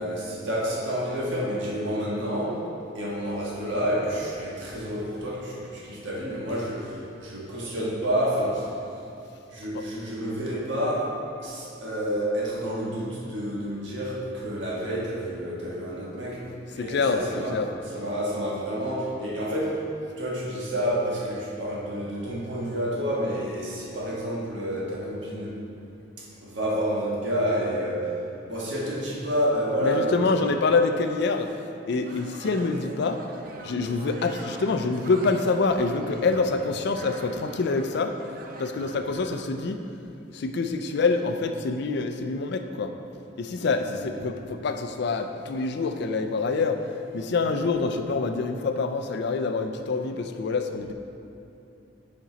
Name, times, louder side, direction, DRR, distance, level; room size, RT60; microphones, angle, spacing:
voice 1, 0.0-2.7 2.9-8.8 9.5-16.5 16.7-19.9 20.2-25.6 26.2-28.2 28.5-30.4 36.3-36.4 38.7-38.9 43.8-44.0, equal, 70° right, -5 dB, 1.6 m, -29 dB
voice 2, 16.8-17.2 17.5-17.7 29.8-31.5 31.9-33.2 33.6-38.1 38.6-39.8 40.3-42.9 43.4-46.8 47.1-50.9, left 4 dB, 60° left, 7 dB, 0.4 m, -26 dB
sound 1, 31.9-39.4, right 2 dB, 50° right, 0.6 m, -44 dB
7.4 x 5.2 x 4.0 m, 2.7 s
head